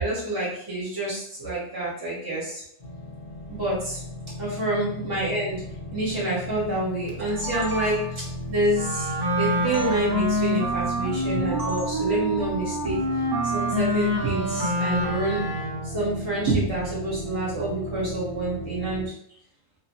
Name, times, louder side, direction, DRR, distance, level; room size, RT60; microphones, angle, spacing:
voice 1, 0.0-2.6 3.5-4.0 4.4-5.6 5.9-13.0 13.5-15.5 15.8-19.0, right 1 dB, 20° right, -7 dB, 0.8 m, -27 dB
sound 1, 2.8-19.1, equal, 35° left, 0.7 m, -36 dB
sound 2, 7.1-8.3 9.7-9.9 11.6-12.0, right 3 dB, 60° right, 0.7 m, -34 dB
Wind instrument woodwind instrument, 8.7-16.0, equal, 45° right, 0.3 m, -27 dB
2.8 x 2.1 x 2.9 m, 0.72 s
omnidirectional pair, 1.2 m